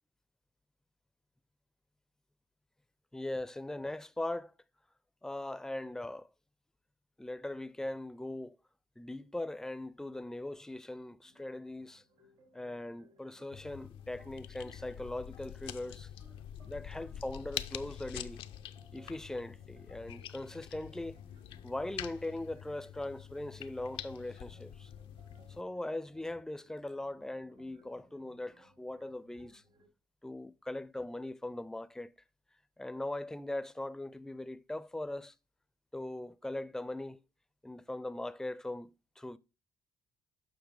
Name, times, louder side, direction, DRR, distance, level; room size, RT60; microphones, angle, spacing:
voice 1, 3.1-4.5 5.2-6.3 7.2-8.6 9.0-12.0 12.5-16.1 16.7-18.4 18.9-21.2 21.6-24.9 25.5-29.6 30.2-32.1 32.8-35.3 35.9-37.2 37.6-39.4, left 1 dB, 5° left, 0.4 m, -40 dB
sound 1, 11.2-29.9, right 2 dB, 80° right, 3.7 m, -65 dB
sound 2, 13.5-25.6, left 10 dB, 75° left, 0.4 m, -46 dB
7.3 x 5.7 x 3.3 m
supercardioid pair, 70°, 9 cm